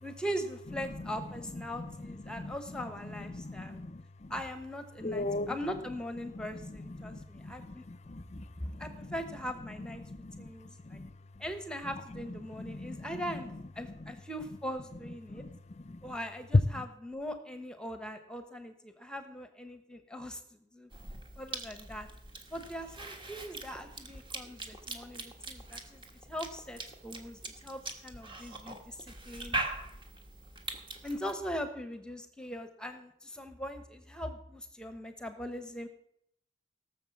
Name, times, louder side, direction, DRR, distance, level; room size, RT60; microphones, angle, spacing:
voice 1, 0.0-3.8 4.3-7.8 8.6-11.0 11.4-15.4 16.0-20.9 21.4-22.1 22.5-26.0 26.3-29.6 31.0-35.9, equal, 5° left, 1.0 m, -41 dB
voice 2, 1.7-4.3 5.0-5.6 6.2-9.1 10.0-10.5 10.8-11.1 12.3-13.2 15.3-15.5 15.8-16.1 16.7-16.8, left 2 dB, 40° left, 0.6 m, -41 dB
Cough / Chewing mastication, 20.9-31.3, right 2 dB, 30° right, 1.5 m, -42 dB
17.5 x 6.8 x 7.1 m
head